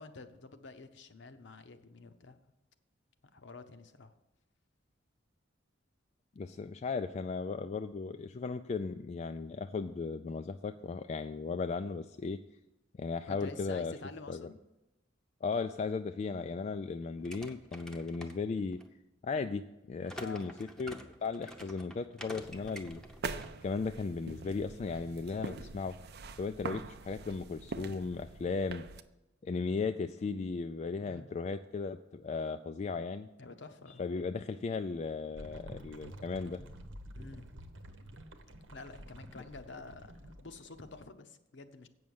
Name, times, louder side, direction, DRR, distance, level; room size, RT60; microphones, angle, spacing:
voice 1, 0.0-2.4 3.3-4.1 13.3-14.6 20.1-20.5 22.5-22.8 31.0-31.3 33.4-34.0 37.1-37.5 38.7-41.9, left 3 dB, 65° left, 9 dB, 0.8 m, -49 dB
voice 2, 6.4-12.4 13.0-13.9 14.3-14.5 15.4-18.8 19.2-20.5 20.8-20.9 21.2-23.0 23.6-25.9 26.4-28.8 29.4-33.3 34.0-36.6, left 4 dB, 35° left, 8 dB, 0.3 m, -36 dB
sound 1, 17.2-18.9 20.1-23.5, equal, 5° left, 0.8 m, -48 dB
sound 2, 22.4-29.0, right 4 dB, 55° right, 0.5 m, -44 dB
sound 3, 35.4-41.1, right 1 dB, 85° right, 1.0 m, -50 dB
8.5 x 6.3 x 7.1 m, 0.96 s
head